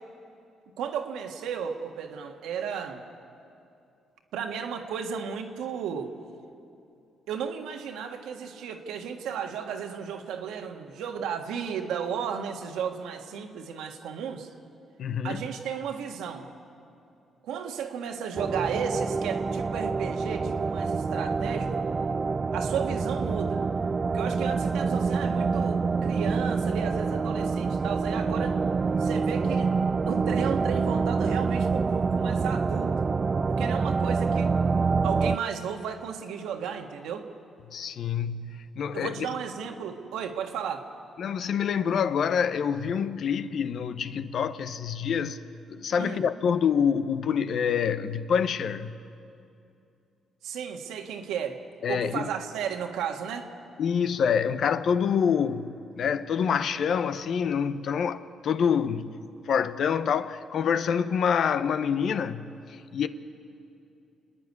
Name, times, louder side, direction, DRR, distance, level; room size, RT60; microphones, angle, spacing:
voice 1, 0.8-3.0 4.3-6.1 7.3-14.5 15.2-16.5 17.4-21.9 22.5-23.6 24.1-28.6 29.0-29.7 30.1-33.1 33.5-34.5 35.0-37.3 38.9-40.9 46.0-46.3 50.4-51.6 51.9-53.5, right 7 dB, 90° right, 1.6 m, -34 dB
voice 2, 15.0-15.4 37.7-39.3 41.2-45.4 45.8-48.9 51.8-52.3 53.8-59.2 59.5-63.1, left 7 dB, 65° left, 0.8 m, -26 dB
sound 1, 18.4-35.4, right 4 dB, 35° right, 0.4 m, -26 dB
29.0 x 10.0 x 9.6 m
cardioid pair, 90°, 0 cm